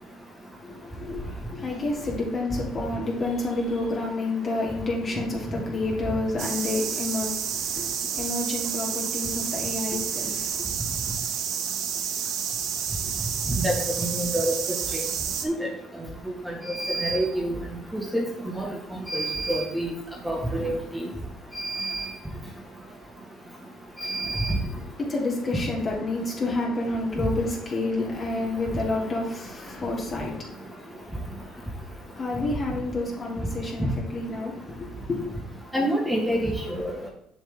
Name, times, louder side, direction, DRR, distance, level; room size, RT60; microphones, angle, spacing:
voice 1, 0.6-10.7 24.2-35.3, left 2 dB, 40° left, 3.0 m, -30 dB
sound 1, 6.4-15.5, right 8 dB, 70° right, 1.0 m, -30 dB
voice 2, 14.0-14.5 14.9-15.0 15.4-15.7 16.5-17.5 17.9-18.2 18.6-18.7 19.1-19.9 20.2-21.1 21.5-22.1 24.0-24.5 35.7-36.9, right 1 dB, 5° right, 1.9 m, -27 dB
7.1 x 6.3 x 3.7 m
supercardioid pair, 90°, 0 cm